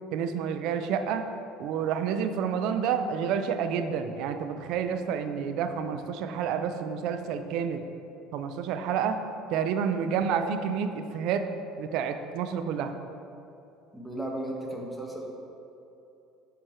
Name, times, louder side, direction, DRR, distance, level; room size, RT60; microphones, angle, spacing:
voice 1, 0.1-1.2 1.6-7.8 8.3-9.2 9.5-11.4 11.8-12.9, right 7 dB, 70° right, 8 dB, 0.4 m, -29 dB
voice 2, 13.9-15.3, right 1 dB, ahead, -1 dB, 1.2 m, -36 dB
6.7 x 4.5 x 4.4 m, 2.8 s
hypercardioid pair, 80°, 0 cm